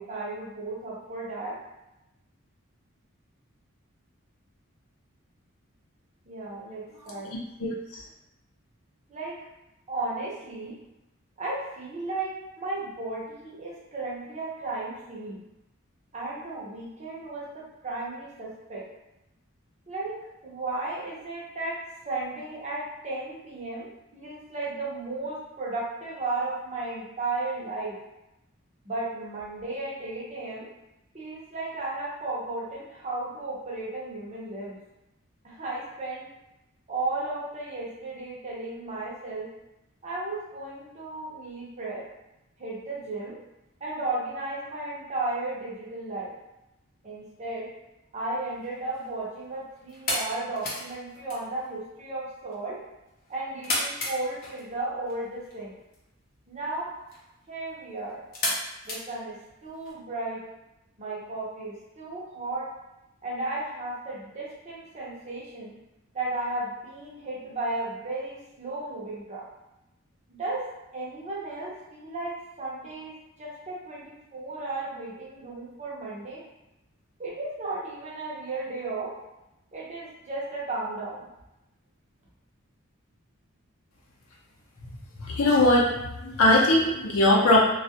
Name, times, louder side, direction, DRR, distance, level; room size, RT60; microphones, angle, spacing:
voice 1, 0.0-1.6 6.3-7.4 9.1-9.4 9.9-10.8 11.4-15.4 16.1-18.8 19.9-28.0 28.8-30.7 31.1-34.8 35.4-36.3 36.9-39.5 40.0-42.1 42.6-43.4 43.8-46.3 47.0-47.7 48.1-52.8 53.3-55.7 56.5-56.9 57.5-58.2 58.9-60.4 61.0-62.7 63.2-65.8 66.1-69.5 70.3-76.4 77.2-79.1 79.7-81.3, right 2 dB, 35° right, -5 dB, 0.7 m, -34 dB
sound 1, 48.5-59.9, left 1 dB, 45° left, 0.7 m, -37 dB
voice 2, 85.2-85.9 86.2-87.6, left 1 dB, 90° left, -4 dB, 0.6 m, -20 dB
2.3 x 2.0 x 2.7 m, 0.92 s
head